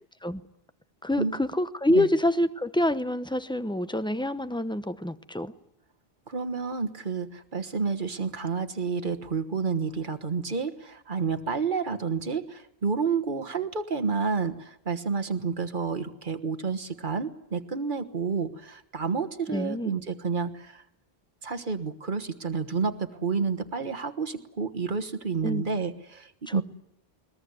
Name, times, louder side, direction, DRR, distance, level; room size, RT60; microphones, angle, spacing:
voice 1, 1.0-5.5 19.5-20.0 25.4-25.6 26.5-26.6, left 1 dB, 5° left, 12 dB, 0.8 m, -27 dB
voice 2, 6.3-20.8 21.4-26.6, right 5 dB, 50° right, 7 dB, 1.5 m, -30 dB
21.5 x 21.0 x 9.6 m, 0.78 s
omnidirectional pair, 1.0 m